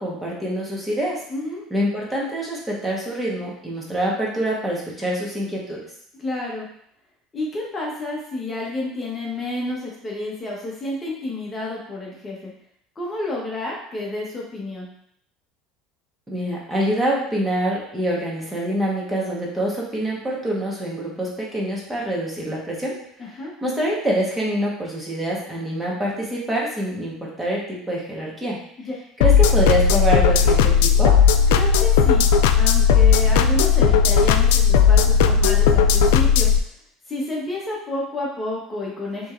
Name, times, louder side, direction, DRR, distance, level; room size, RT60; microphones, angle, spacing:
voice 1, 0.0-1.2 1.7-5.8 16.3-22.9 23.6-28.6 29.2-31.2, right 1 dB, 10° right, -4 dB, 1.2 m, -25 dB
voice 2, 1.3-1.6 6.1-6.7 7.3-12.5 13.0-14.9 23.2-23.5 31.5-32.3 32.6-36.5 37.1-39.3, left 2 dB, 20° left, -3 dB, 1.0 m, -30 dB
sound 1, 29.2-36.6, left 6 dB, 85° left, 0.3 m, -16 dB
6.0 x 3.1 x 2.5 m, 0.70 s
supercardioid pair, 120°, 0 cm